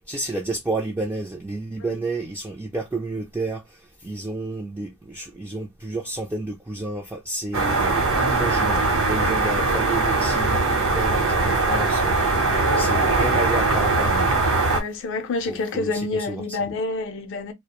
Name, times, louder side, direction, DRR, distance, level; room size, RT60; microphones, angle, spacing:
voice 1, 0.1-3.6 4.0-12.1 12.8-14.3 15.5-16.6, right 2 dB, 10° right, 0.3 m, -30 dB
sound 1, 7.5-14.8, right 3 dB, 60° right, 0.8 m, -21 dB
voice 2, 9.1-9.8 12.6-12.9 14.7-17.5, left 3 dB, 55° left, 0.5 m, -29 dB
2.4 x 2.0 x 2.8 m
head